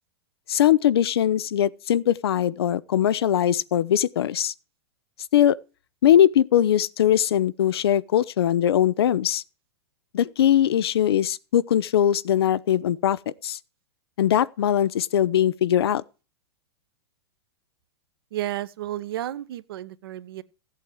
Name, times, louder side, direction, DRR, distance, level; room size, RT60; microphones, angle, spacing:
voice 1, 0.5-4.5 5.3-5.6 6.0-9.4 10.1-13.6 14.2-16.0, left 10 dB, 70° left, 0.7 m, -21 dB
voice 2, 18.3-20.4, right 13 dB, 60° right, 1.1 m, -32 dB
15.5 x 8.3 x 4.7 m
hypercardioid pair, 105°, 14 cm